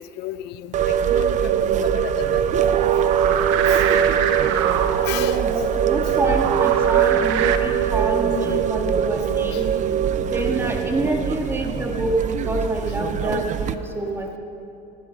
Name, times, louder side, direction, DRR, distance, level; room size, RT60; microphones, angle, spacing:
voice 1, 0.0-2.5 3.7-3.8 5.1-5.4 6.0-6.1 9.5-9.6, left 13 dB, 70° left, 14 dB, 0.6 m, -34 dB
sound 1, 0.7-13.7, right 8 dB, 40° right, 0.6 m, -22 dB
sound 2, 2.6-7.6, right 9 dB, 85° right, 0.8 m, -26 dB
voice 2, 5.5-9.7 10.2-14.4, right 1 dB, 15° right, 1 dB, 2.0 m, -27 dB
15.5 x 11.0 x 5.4 m, 2.7 s
cardioid pair, 110°, 18 cm